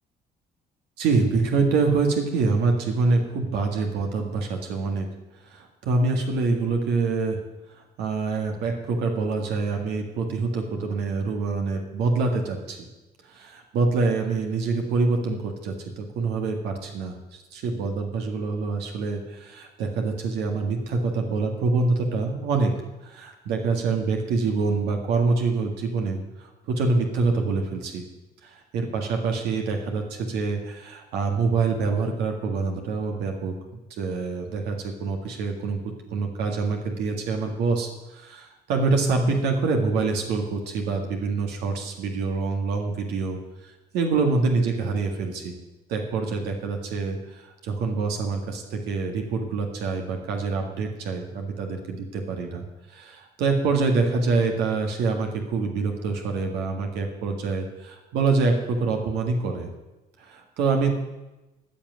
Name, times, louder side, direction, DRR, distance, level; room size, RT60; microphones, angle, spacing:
voice 1, 1.0-5.1 5.4-7.4 8.0-12.9 13.2-22.7 23.0-28.0 28.4-43.4 43.6-45.6 45.9-59.7 60.2-61.0, right 4 dB, 85° right, 2 dB, 1.9 m, -26 dB
15.0 x 5.8 x 9.2 m, 1.0 s
cardioid pair, 110°, 17 cm